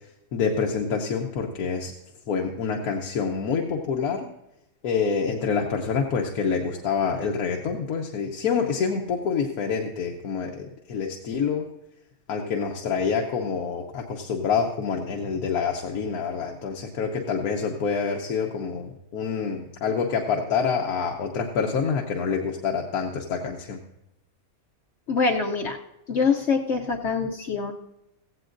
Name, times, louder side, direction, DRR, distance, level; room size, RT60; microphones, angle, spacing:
voice 1, 0.3-1.9 2.3-4.3 4.8-11.6 12.3-23.8, left 6 dB, 90° left, 1 dB, 1.4 m, -27 dB
voice 2, 25.1-25.8 26.1-27.7, left 5 dB, 60° left, 3 dB, 0.9 m, -24 dB
16.0 x 15.5 x 2.6 m, 0.87 s
omnidirectional pair, 1.5 m